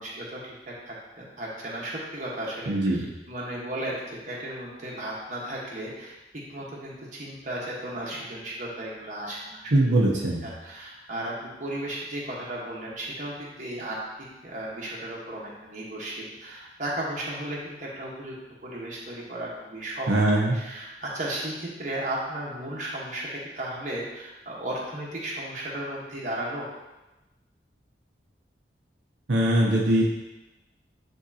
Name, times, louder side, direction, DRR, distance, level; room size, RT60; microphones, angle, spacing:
voice 1, 0.0-3.0 3.3-6.2 6.5-9.7 10.4-14.0 14.4-18.3 18.6-26.7, right 1 dB, 45° right, -5 dB, 1.4 m, -35 dB
voice 2, 2.7-3.0 9.7-10.4 20.1-20.6 29.3-30.0, right 1 dB, 85° right, -3 dB, 0.9 m, -21 dB
9.4 x 3.6 x 2.9 m, 1.0 s
head